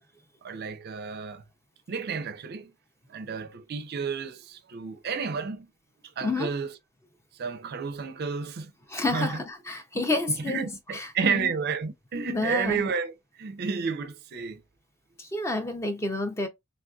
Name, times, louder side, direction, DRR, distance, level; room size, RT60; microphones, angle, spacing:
voice 1, 0.4-1.4 1.9-2.7 3.1-5.7 6.2-6.7 7.4-8.7 9.1-9.4 9.9-10.0 10.5-14.6, right 5 dB, 45° right, 0.4 m, -31 dB
voice 2, 6.2-6.5 8.9-11.5 12.1-12.8 15.2-16.5, left 2 dB, 15° left, 0.4 m, -30 dB
3.3 x 2.5 x 2.2 m
head